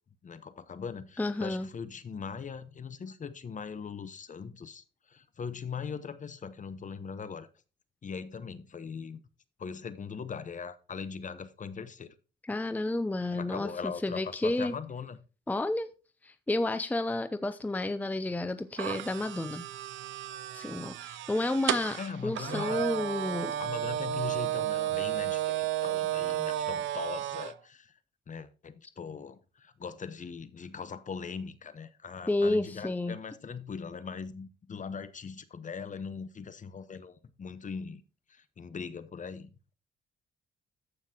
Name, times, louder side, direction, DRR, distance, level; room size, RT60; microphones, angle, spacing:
voice 1, 0.2-7.5 8.0-9.2 9.6-12.1 13.3-15.2 22.0-22.9 23.6-28.0 28.3-38.0 38.3-39.5, left 6 dB, 40° left, 1.0 m, -40 dB
voice 2, 1.2-1.7 12.4-14.7 15.5-15.9 16.2-19.6 20.5-23.5 32.3-33.1, left 2 dB, 10° left, 0.6 m, -31 dB
sound 1, 18.8-27.5, right 13 dB, 75° right, 0.5 m, -33 dB
14.5 x 5.8 x 2.9 m
cardioid pair, 90°, 20 cm